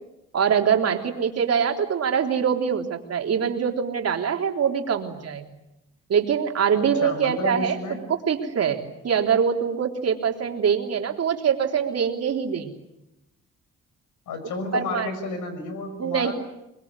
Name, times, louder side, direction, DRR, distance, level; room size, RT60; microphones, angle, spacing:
voice 1, 0.3-5.5 6.1-12.7 14.7-15.1 16.0-16.3, right 7 dB, 55° right, 3 dB, 3.6 m, -24 dB
voice 2, 6.7-8.1 14.3-16.3, left 3 dB, 75° left, 9 dB, 5.9 m, -31 dB
24.0 x 21.5 x 9.8 m, 0.90 s
cardioid pair, 90°, 30 cm